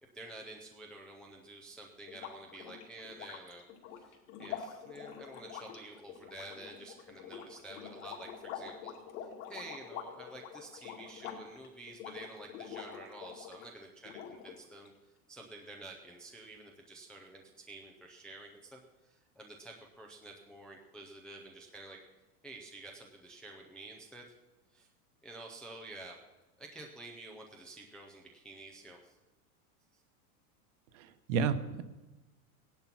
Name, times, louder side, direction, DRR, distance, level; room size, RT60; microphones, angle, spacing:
voice 1, 0.1-3.6 3.9-9.0 9.5-22.0 22.4-24.3 24.7-24.9 25.2-26.2 26.6-29.2 29.9-30.0, right 2 dB, ahead, 0 dB, 0.4 m, -50 dB
sound 1, 2.1-13.7 14.0-14.9, left 8 dB, 60° left, 2.5 m, -46 dB
voice 2, 30.9-31.8, right 6 dB, 55° right, 10 dB, 1.2 m, -32 dB
16.0 x 11.0 x 5.9 m, 1.1 s
supercardioid pair, 160°, 45 cm